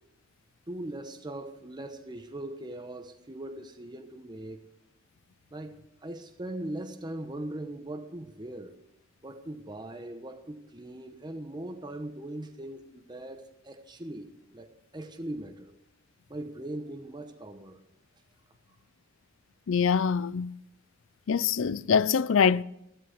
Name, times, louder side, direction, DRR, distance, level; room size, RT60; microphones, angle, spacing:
voice 1, 0.7-4.6 5.5-8.7 9.2-15.7 16.3-17.8, right 1 dB, 20° right, 1.0 m, -40 dB
voice 2, 19.7-20.5 21.3-22.6, left 6 dB, 80° left, 0.5 m, -24 dB
14.0 x 12.5 x 5.0 m
head